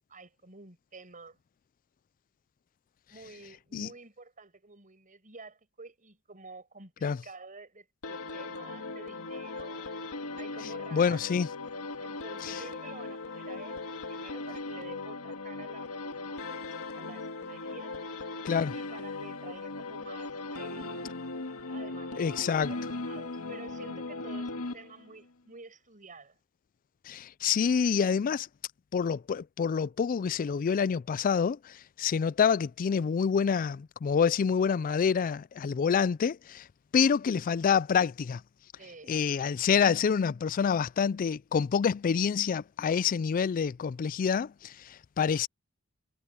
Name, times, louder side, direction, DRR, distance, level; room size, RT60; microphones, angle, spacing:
voice 1, 0.1-1.4 3.1-11.3 12.0-16.5 16.9-17.9 18.7-21.2 21.7-26.3 38.8-39.2, right 3 dB, 35° right, 6.4 m, -50 dB
sound 1, 8.0-25.2, left 3 dB, 80° left, 1.8 m, -38 dB
voice 2, 10.9-11.5 12.4-12.6 18.4-18.7 22.2-22.7 27.1-28.5 28.9-36.7 36.9-38.4 39.1-45.5, left 6 dB, 40° left, 0.3 m, -27 dB
head